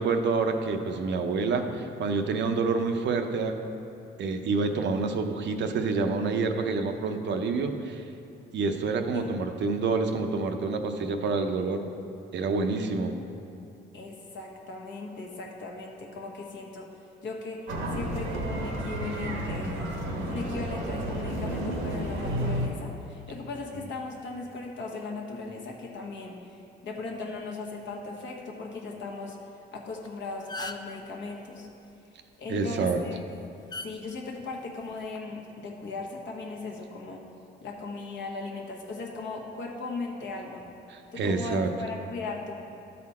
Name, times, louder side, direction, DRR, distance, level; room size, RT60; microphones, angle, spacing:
voice 1, 0.0-3.5 4.2-8.0 8.5-11.9 12.3-13.1 32.5-33.0 40.9-41.7, right 4 dB, 65° right, 6 dB, 0.7 m, -27 dB
voice 2, 13.9-19.8 20.3-26.4 26.8-29.4 29.7-31.7 32.4-33.2 33.8-37.2 37.6-40.7 41.1-42.5, left 3 dB, 70° left, -1 dB, 1.3 m, -38 dB
sound 1, 17.7-22.7, right 1 dB, 85° right, 1.2 m, -31 dB
sound 2, 29.9-30.1 30.3-31.0 32.6-32.9 33.7-33.9 34.9-35.2, left 2 dB, 20° left, 0.4 m, -37 dB
12.5 x 4.2 x 4.2 m, 2.7 s
cardioid pair, 90°, 20 cm